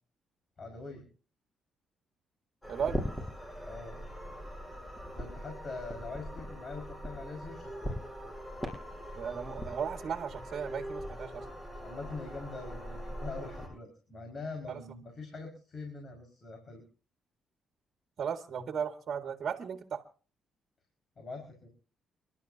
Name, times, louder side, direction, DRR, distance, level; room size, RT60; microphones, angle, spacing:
voice 1, 0.6-1.1 3.6-4.0 5.1-8.0 11.8-16.8 21.2-21.7, left 3 dB, 45° left, 2 dB, 5.5 m, -43 dB
sound 1, 2.6-13.7, equal, 15° left, 7.7 m, -41 dB
voice 2, 2.7-3.0 9.2-11.4 14.7-14.8 18.2-20.0, right 7 dB, 55° right, 6 dB, 1.9 m, -36 dB
29.5 x 12.0 x 2.8 m, 0.38 s
cardioid pair, 90°, 0 cm